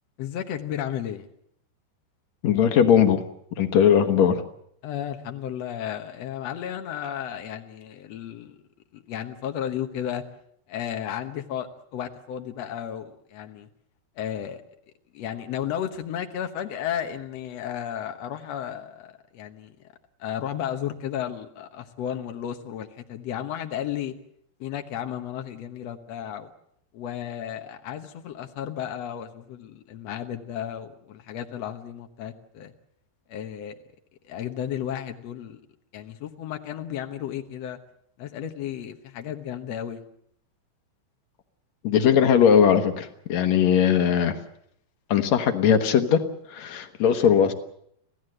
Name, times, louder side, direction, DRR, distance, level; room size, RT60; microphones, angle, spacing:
voice 1, 0.2-1.3 4.8-8.6 8.9-10.2 10.7-13.7 14.1-14.6 15.1-19.7 20.2-24.1 24.6-26.5 26.9-32.7 33.3-33.8 34.3-35.6 35.9-37.8 38.2-40.0, left 10 dB, 75° left, 5 dB, 1.5 m, -33 dB
voice 2, 2.4-3.2 3.6-4.4 41.8-44.4 45.1-46.2 46.5-47.5, left 8 dB, 60° left, 7 dB, 2.0 m, -19 dB
26.5 x 16.5 x 7.8 m, 0.72 s
omnidirectional pair, 4.7 m